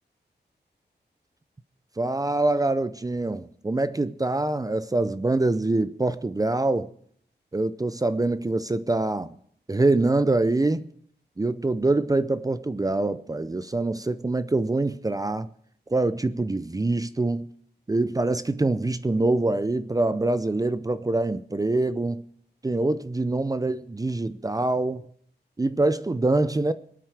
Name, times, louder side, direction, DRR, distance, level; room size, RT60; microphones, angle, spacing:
voice 1, 2.0-6.9 7.5-9.4 9.7-10.8 11.4-15.5 15.9-17.5 17.9-22.2 22.6-25.1 25.6-26.7, right 2 dB, 20° right, 0.5 m, -24 dB
23.5 x 9.2 x 4.8 m
wide cardioid pair, 130°, 18 cm